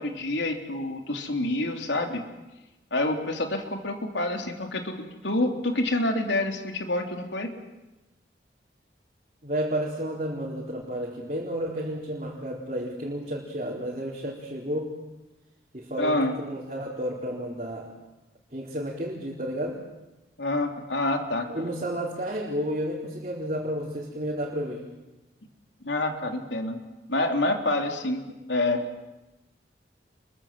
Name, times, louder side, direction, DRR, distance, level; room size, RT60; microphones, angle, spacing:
voice 1, 0.0-2.2 2.9-5.0 5.2-7.5 16.0-16.3 20.4-21.5 25.8-26.8 27.1-28.9, left 2 dB, 80° left, 4 dB, 3.4 m, -27 dB
voice 2, 9.4-15.0 15.7-18.0 18.5-19.8 21.5-24.9, equal, 40° right, -3 dB, 4.3 m, -31 dB
29.5 x 23.5 x 7.5 m, 1.0 s
head